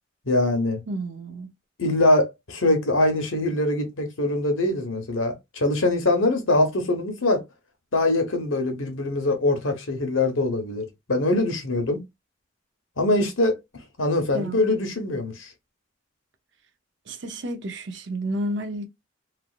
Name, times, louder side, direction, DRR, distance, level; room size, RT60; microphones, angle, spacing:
voice 1, 0.2-0.8 1.8-7.4 7.9-12.0 13.0-13.6 14.0-15.5, left 2 dB, 85° left, 1.0 m, -23 dB
voice 2, 0.9-1.5 14.3-14.6 17.1-18.9, right 1 dB, 60° right, 0.6 m, -31 dB
3.3 x 2.4 x 2.4 m
head